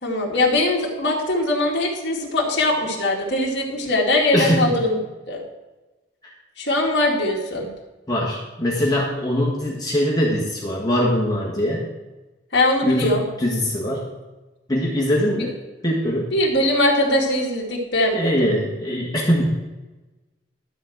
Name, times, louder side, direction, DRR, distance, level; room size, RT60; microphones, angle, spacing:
voice 1, 0.0-5.0 5.3-5.4 6.6-7.7 12.5-13.2 16.3-18.3, left 1 dB, 55° left, -3 dB, 2.1 m, -21 dB
voice 2, 4.3-4.8 6.2-6.3 8.1-11.9 12.8-14.1 14.7-15.6 15.8-16.3 18.1-19.4, equal, 20° left, -4 dB, 1.7 m, -22 dB
12.5 x 4.4 x 7.7 m, 1.1 s
head